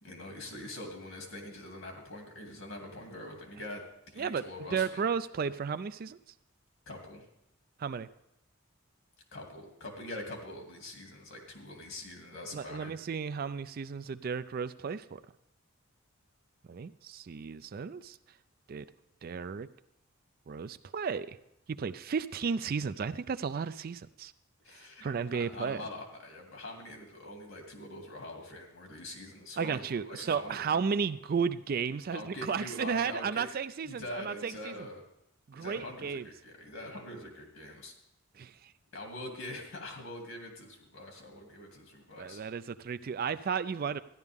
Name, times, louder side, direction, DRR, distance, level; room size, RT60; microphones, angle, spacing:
voice 1, 0.0-5.0 6.9-7.3 9.3-12.9 24.6-30.8 32.1-33.5 33.8-35.0 35.5-37.9 38.9-42.4, left 1 dB, 70° left, 2 dB, 2.5 m, -44 dB
voice 2, 4.7-6.2 7.8-8.1 12.5-15.2 16.7-18.2 18.7-18.8 19.2-19.7 20.5-21.4 21.7-24.3 25.0-25.8 29.6-34.7 35.5-36.2 38.4-38.5 42.2-44.0, right 6 dB, 45° right, 13 dB, 0.4 m, -33 dB
13.5 x 11.0 x 3.6 m, 0.82 s
head